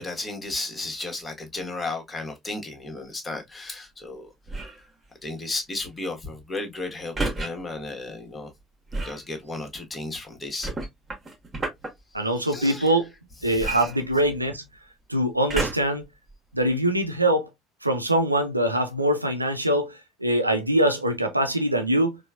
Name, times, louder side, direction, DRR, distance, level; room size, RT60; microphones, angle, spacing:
voice 1, 0.0-4.3 5.2-8.5 8.9-10.7 12.3-12.9 13.4-13.9, left 2 dB, 25° left, 1.3 m, -34 dB
sound 1, 4.5-4.9 7.2-7.5 8.9-9.2 10.6-11.9 13.6-14.6 15.5-16.0 16.7-16.8, right 2 dB, 30° right, 1.3 m, -30 dB
voice 2, 12.1-13.1 13.4-14.6 15.1-16.0 16.5-17.5 17.8-22.2, right 1 dB, 85° right, 0.4 m, -23 dB
4.4 x 2.3 x 2.3 m
figure-of-eight pair, 50°, 0 cm